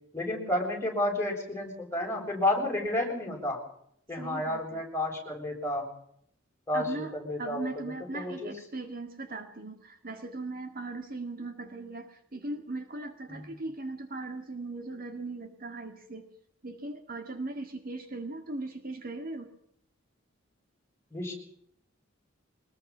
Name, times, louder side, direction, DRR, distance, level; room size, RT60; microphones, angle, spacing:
voice 1, 0.1-3.6 4.1-5.9 6.7-8.5 13.3-13.5 21.1-21.3, left 1 dB, 15° left, 0 dB, 7.4 m, -31 dB
voice 2, 4.1-4.8 6.7-7.1 7.4-16.3 16.6-19.5, right 2 dB, 45° right, 6 dB, 2.0 m, -38 dB
23.5 x 20.5 x 5.7 m, 0.69 s
head